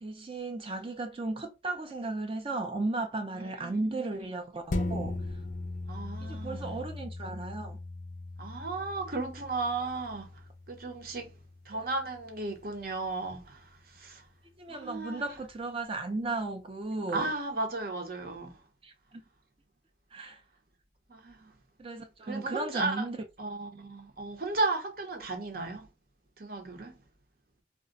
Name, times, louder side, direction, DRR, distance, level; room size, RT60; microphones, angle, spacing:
voice 1, 0.0-5.2 6.2-7.8 14.6-17.3 18.8-19.2 20.1-20.4 21.8-23.2, right 2 dB, 30° right, 0.4 m, -35 dB
voice 2, 3.3-4.3 5.9-6.8 8.4-11.3 11.7-14.3 14.7-15.4 17.1-18.6 21.1-21.5 22.2-23.1 23.4-25.9 26.4-27.0, right 3 dB, 55° right, 0.8 m, -35 dB
sound 1, 4.7-13.5 14.0-14.1, left 2 dB, 45° left, 0.4 m, -39 dB
2.4 x 2.1 x 3.7 m
head